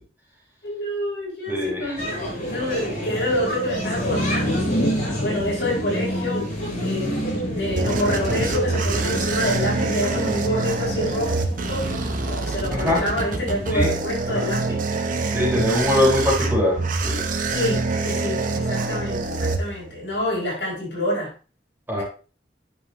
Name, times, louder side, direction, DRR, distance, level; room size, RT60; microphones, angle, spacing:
voice 1, 0.6-4.7 5.2-6.5 6.8-11.3 11.6-11.9 12.4-14.8 17.5-21.3, left 1 dB, 70° left, -4 dB, 4.8 m, -27 dB
voice 2, 1.5-2.0 12.7-13.0 13.7-13.9 14.3-14.4 15.3-17.3 21.9-22.0, left 1 dB, 10° right, -4 dB, 3.6 m, -22 dB
sound 1, 2.0-13.7, equal, 45° left, 4.1 m, -28 dB
sound 2, 7.2-20.1, right 3 dB, 50° right, 0.9 m, -26 dB
10.0 x 5.8 x 3.2 m, 0.35 s
head